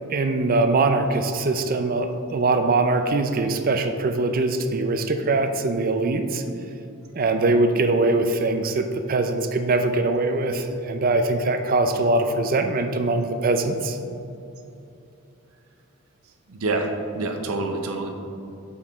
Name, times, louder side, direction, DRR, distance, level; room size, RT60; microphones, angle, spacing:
voice 1, 0.1-6.4 7.1-14.0, right 2 dB, 40° right, 7 dB, 0.4 m, -22 dB
voice 2, 16.5-18.1, right 2 dB, 80° right, 4 dB, 0.7 m, -27 dB
6.7 x 5.5 x 3.5 m, 2.8 s
head